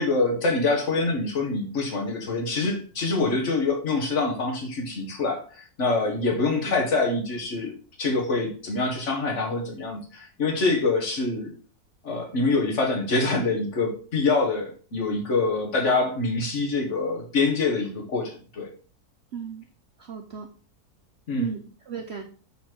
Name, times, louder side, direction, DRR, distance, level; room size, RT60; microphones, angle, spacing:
voice 1, 0.0-7.7 8.0-11.5 12.0-18.7 21.3-21.5, left 3 dB, 50° left, 2 dB, 1.7 m, -25 dB
voice 2, 19.3-19.7 20.0-20.5 21.4-22.2, right 7 dB, 55° right, 3 dB, 0.8 m, -35 dB
5.9 x 4.3 x 4.6 m, 0.40 s
omnidirectional pair, 1.7 m